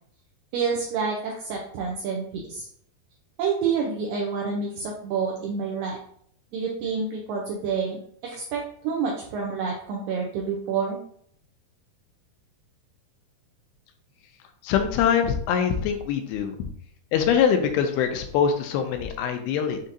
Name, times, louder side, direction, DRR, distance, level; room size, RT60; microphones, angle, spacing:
voice 1, 0.5-2.7 3.4-6.0 6.5-11.0, right 5 dB, 80° right, -1 dB, 2.0 m, -28 dB
voice 2, 14.6-16.6 17.1-19.8, left 7 dB, 80° left, 6 dB, 2.5 m, -23 dB
7.2 x 2.8 x 2.6 m, 0.63 s
omnidirectional pair, 4.6 m